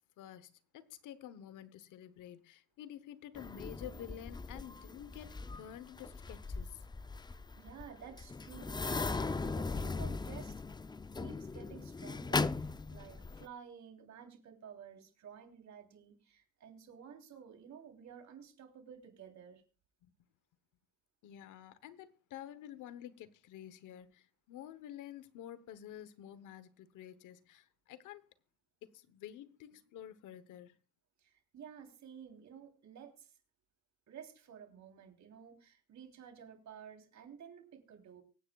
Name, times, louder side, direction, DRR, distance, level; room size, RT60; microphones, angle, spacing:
voice 1, 0.2-6.9 20.0-20.1 21.2-28.3 28.9-30.8, left 10 dB, 85° left, 1.0 m, -50 dB
sound 1, 3.4-13.5, left 3 dB, 15° left, 0.4 m, -39 dB
voice 2, 7.2-10.5 11.2-19.6 31.2-33.3 34.1-38.2, right 7 dB, 65° right, 3.4 m, -53 dB
24.0 x 9.2 x 2.3 m
cardioid pair, 90°, 30 cm